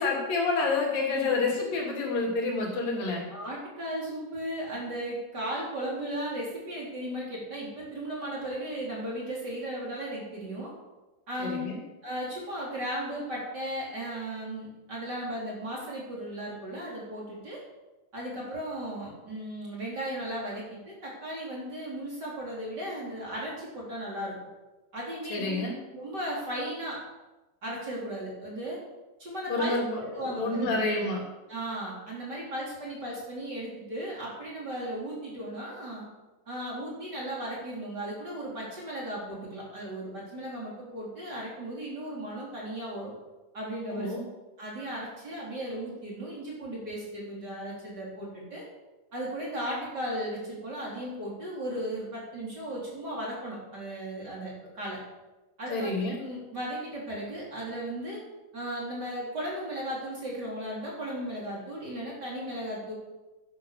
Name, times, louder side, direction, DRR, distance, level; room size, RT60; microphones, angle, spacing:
voice 1, 0.0-3.2 11.4-11.8 25.3-25.8 29.5-31.2 43.9-44.2 55.7-56.2, left 3 dB, 75° left, -1 dB, 4.6 m, -28 dB
voice 2, 3.3-10.7 11.3-11.7 12.0-17.6 18.1-24.4 24.9-25.6 25.9-27.0 27.6-28.8 29.2-29.8 30.1-30.7 31.5-36.0 36.5-43.1 43.5-44.1 44.6-48.6 49.1-55.0 55.6-58.2 58.5-62.9, right 1 dB, 30° right, -4 dB, 4.2 m, -36 dB
11.5 x 10.0 x 6.8 m, 1.1 s
omnidirectional pair, 4.0 m